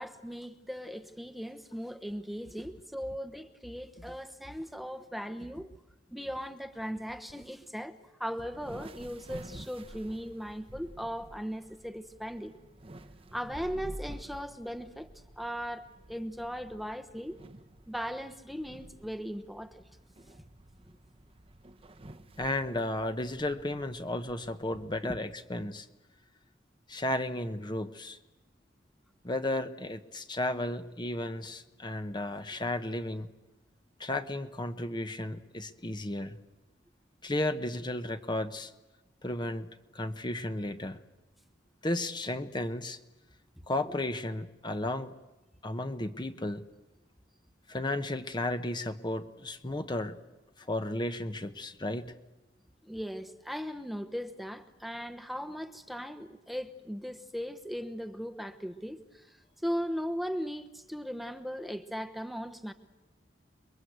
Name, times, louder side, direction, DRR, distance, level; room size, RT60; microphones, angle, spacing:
voice 1, 0.0-5.7 6.1-12.5 13.3-15.1 15.4-17.4 17.9-19.8 25.0-25.1 52.8-59.4 59.6-62.7, equal, ahead, 9 dB, 1.0 m, -38 dB
sound 1, 8.4-25.0, right 1 dB, 30° right, 1.0 m, -50 dB
voice 2, 22.4-25.9 26.9-28.2 29.2-33.3 34.0-36.4 37.2-38.7 39.2-39.7 39.9-41.0 41.8-43.0 43.7-45.1 45.6-46.6 47.7-50.2 50.7-52.1, left 1 dB, 25° left, 8 dB, 1.0 m, -33 dB
29.5 x 22.0 x 8.1 m, 1.0 s
head